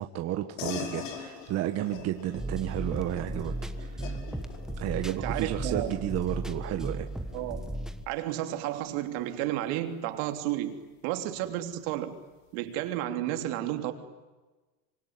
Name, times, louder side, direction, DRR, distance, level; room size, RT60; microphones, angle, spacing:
voice 1, 0.0-4.2 4.8-7.1, right 13 dB, 40° right, 1.6 m, -32 dB
sound 1, 0.6-10.4, left 8 dB, 90° left, 5.2 m, -44 dB
sound 2, 2.3-8.0, right 1 dB, ahead, 1.3 m, -35 dB
voice 2, 5.1-6.1 7.3-7.7 8.1-12.1 12.5-13.9, right 13 dB, 70° right, 3.3 m, -32 dB
25.0 x 24.5 x 9.6 m
cardioid pair, 145°, 37 cm